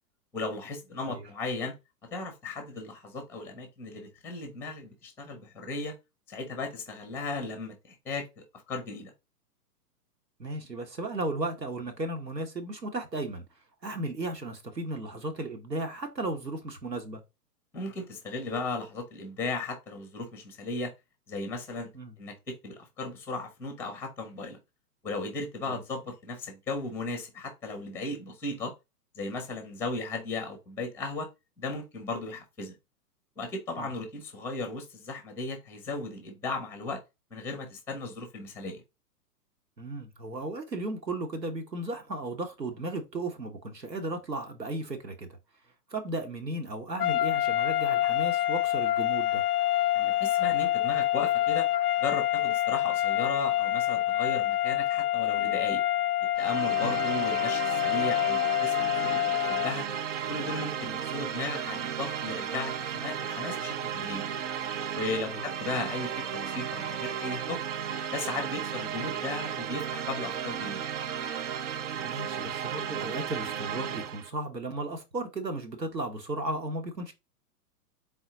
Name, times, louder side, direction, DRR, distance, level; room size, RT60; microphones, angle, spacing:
voice 1, 0.3-1.8 2.1-5.9 6.3-9.1 17.7-20.9 21.3-21.9 22.2-24.6 25.0-28.7 29.1-31.3 31.6-32.8 33.4-37.0 37.3-38.8 49.9-51.7 52.0-55.8 56.4-59.9 60.3-64.3 64.9-67.6 68.1-70.9, left 3 dB, 5° left, 0.6 m, -36 dB
voice 2, 10.4-13.4 13.8-17.2 21.9-22.1 25.7-25.8 33.8-33.9 39.8-45.3 45.9-49.4 56.8-57.0 65.3-65.4 72.0-77.1, right 2 dB, 90° right, 1.2 m, -35 dB
sound 1, 47.0-59.8, left 13 dB, 70° left, 0.5 m, -27 dB
sound 2, 56.3-74.3, right 8 dB, 50° right, 0.5 m, -34 dB
4.0 x 3.6 x 2.8 m
figure-of-eight pair, 120°, 48 cm